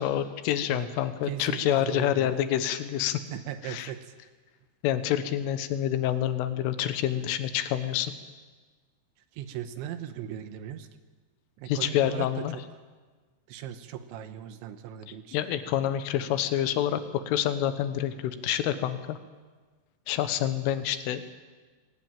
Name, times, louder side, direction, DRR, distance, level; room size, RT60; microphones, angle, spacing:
voice 1, 0.0-3.2 3.6-3.9 4.8-8.1 11.7-12.6 15.3-19.2 20.1-21.2, left 11 dB, 85° left, 11 dB, 3.7 m, -27 dB
voice 2, 1.2-2.3 3.3-4.1 9.3-10.9 11.6-12.6 13.5-15.4, right 10 dB, 75° right, 9 dB, 3.2 m, -38 dB
22.5 x 18.0 x 9.0 m, 1.4 s
omnidirectional pair, 5.7 m